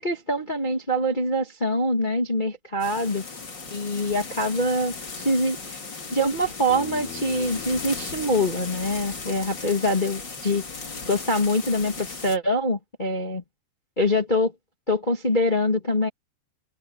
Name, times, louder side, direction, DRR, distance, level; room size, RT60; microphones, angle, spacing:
voice 1, 0.0-3.2 3.7-5.8 6.1-10.6 11.0-13.4 14.0-14.5 14.9-16.1, left 1 dB, 55° left, 0.5 m, -24 dB
sound 1, 2.8-12.4, left 4 dB, 30° left, 2.9 m, -37 dB
Bass guitar, 6.7-11.0, left 7 dB, 85° left, 6.8 m, -43 dB
omnidirectional pair, 5.4 m